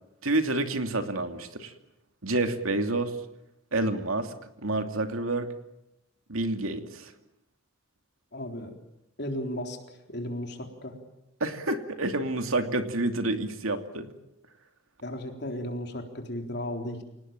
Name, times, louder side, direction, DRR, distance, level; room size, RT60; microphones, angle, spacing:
voice 1, 0.2-1.7 2.2-3.2 3.7-4.3 4.6-5.5 6.3-7.1 11.4-14.1, right 2 dB, 80° right, 6 dB, 2.6 m, -28 dB
voice 2, 8.3-8.7 9.2-9.8 10.1-11.0 15.0-17.0, left 1 dB, 50° left, 3 dB, 3.9 m, -35 dB
28.0 x 19.0 x 8.9 m, 0.87 s
head